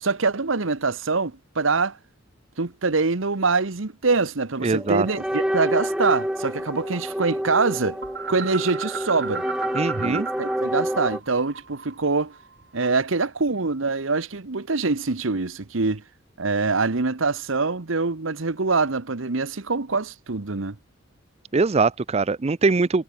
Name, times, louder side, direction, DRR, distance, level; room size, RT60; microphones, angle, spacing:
voice 1, 0.0-2.0 2.6-8.0 8.3-9.4 10.0-12.3 12.7-16.0 16.4-20.7, right 4 dB, 75° right, 1.2 m, -24 dB
voice 2, 4.6-5.1 9.7-10.3 21.5-23.0, right 4 dB, 30° right, 0.5 m, -22 dB
sound 1, 4.7-11.2, equal, 5° right, 2.4 m, -28 dB
sound 2, 8.0-10.6 10.9-13.2, right 6 dB, 60° right, 7.7 m, -35 dB
head